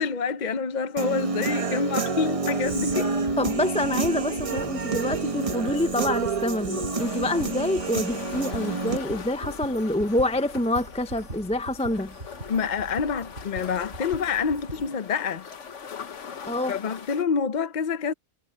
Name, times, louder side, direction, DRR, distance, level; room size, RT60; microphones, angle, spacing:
voice 1, 0.0-3.1 12.5-15.5 16.7-18.1, left 6 dB, 45° left, 0.7 m, -27 dB
Human voice / Guitar, 1.0-9.0, right 4 dB, 30° right, 1.0 m, -28 dB
sound 1, 2.6-14.9, right 2 dB, 65° right, 5.7 m, -42 dB
voice 2, 3.4-12.1 16.5-16.8, left 1 dB, 10° left, 0.4 m, -27 dB
sound 2, 7.0-17.2, left 7 dB, 80° left, 1.5 m, -41 dB
omnidirectional pair, 1.2 m